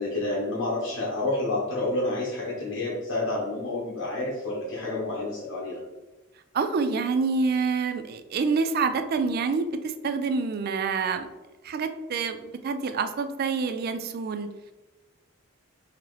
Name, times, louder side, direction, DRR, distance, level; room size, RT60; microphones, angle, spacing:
voice 1, 0.0-5.8, left 2 dB, 80° left, -5 dB, 0.9 m, -29 dB
voice 2, 6.5-11.3 11.6-14.5, right 4 dB, 50° right, 9 dB, 0.3 m, -27 dB
3.8 x 2.9 x 3.1 m, 1.1 s
head